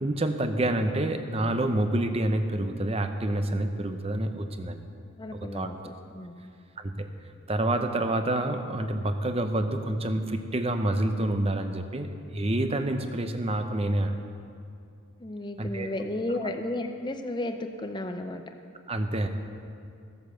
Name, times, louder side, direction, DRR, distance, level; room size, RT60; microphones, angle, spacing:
voice 1, 0.0-4.9 5.5-5.7 6.8-7.1 7.5-14.2 15.6-15.9 16.4-16.5 18.9-19.3, right 1 dB, 25° right, 7 dB, 0.7 m, -28 dB
voice 2, 5.2-6.5 15.2-18.4, left 1 dB, 20° left, 6 dB, 0.5 m, -33 dB
15.5 x 8.2 x 6.8 m, 2.5 s
head